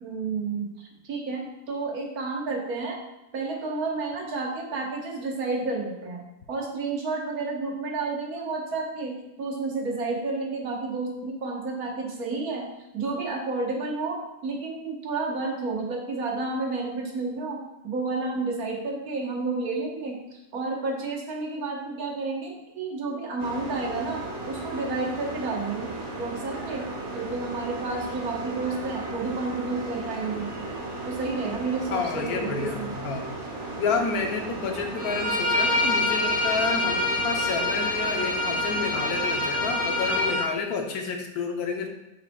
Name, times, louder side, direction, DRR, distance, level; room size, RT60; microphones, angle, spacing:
voice 1, 0.0-0.7 1.0-3.0 3.3-6.2 6.5-12.7 12.9-25.9 26.2-26.9 27.1-30.5 31.0-32.9, right 3 dB, 75° right, 0 dB, 1.6 m, -31 dB
sound 1, 23.4-40.4, right 2 dB, 35° right, 0.8 m, -36 dB
voice 2, 31.9-33.3 33.8-41.9, left 5 dB, 80° left, 3 dB, 1.2 m, -30 dB
Bowed string instrument, 35.0-40.5, left 2 dB, 5° right, 1.3 m, -26 dB
7.2 x 5.8 x 2.2 m, 0.94 s
omnidirectional pair, 1.6 m